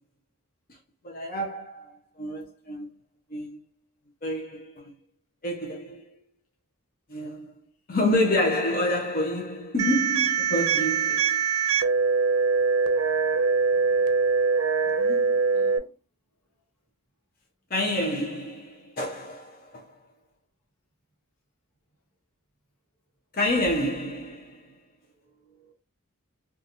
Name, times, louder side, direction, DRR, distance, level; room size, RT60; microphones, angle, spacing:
voice 1, 1.0-2.9 3.3-3.6 4.2-4.9 5.4-6.2 7.1-7.6 7.9-11.4 15.0-15.4 17.7-19.9 23.3-24.7, left 1 dB, 40° left, 0.6 m, -28 dB
sound 1, 9.8-15.8, right 5 dB, 90° right, 0.5 m, -23 dB
voice 2, 15.5-15.9 25.1-25.7, equal, 85° left, 1.1 m, -54 dB
2.8 x 2.4 x 2.6 m
head